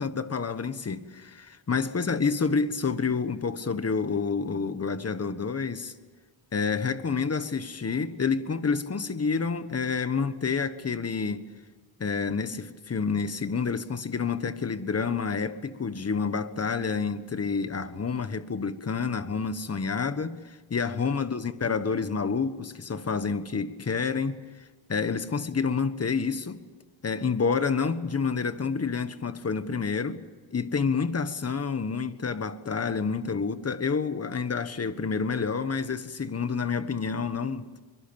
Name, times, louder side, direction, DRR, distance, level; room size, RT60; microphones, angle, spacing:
voice 1, 0.0-5.9 6.5-11.5 12.0-24.4 24.9-26.6 27.0-30.2 30.5-37.7, left 5 dB, 30° left, 1.4 m, -28 dB
24.0 x 23.0 x 7.1 m
cardioid pair, 115°, 46 cm